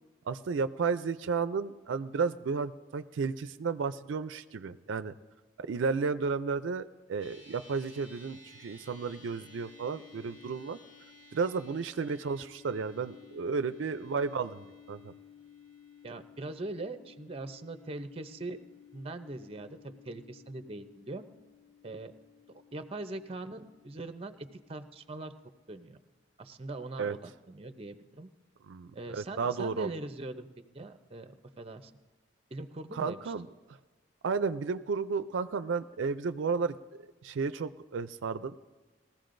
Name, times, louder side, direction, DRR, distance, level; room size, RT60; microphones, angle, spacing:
voice 1, 0.3-5.1 5.6-10.8 11.3-15.1 27.0-27.1 28.7-29.9 32.9-33.5 34.2-38.5, right 5 dB, 85° right, 12 dB, 0.4 m, -33 dB
sound 1, 7.2-25.7, left 5 dB, 60° left, 3.5 m, -56 dB
voice 2, 16.0-18.6 18.9-21.2 21.8-22.1 22.7-25.3 25.7-26.0 26.4-28.3 28.9-30.5 30.7-31.9 32.5-33.3, right 2 dB, 30° right, 9 dB, 0.6 m, -41 dB
20.5 x 15.0 x 2.6 m, 1.3 s
head